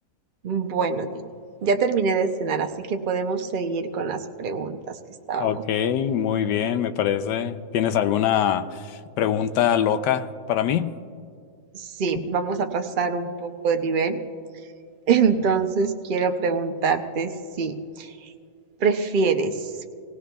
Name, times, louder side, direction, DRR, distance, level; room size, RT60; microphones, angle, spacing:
voice 1, 0.4-1.1 1.6-4.8 5.3-5.6 11.7-14.2 15.1-18.1 18.8-19.5, right 5 dB, 80° right, 0.4 m, -24 dB
voice 2, 5.4-10.9 15.4-15.5, left 9 dB, 90° left, 1.2 m, -23 dB
25.5 x 17.5 x 2.3 m
omnidirectional pair, 1.8 m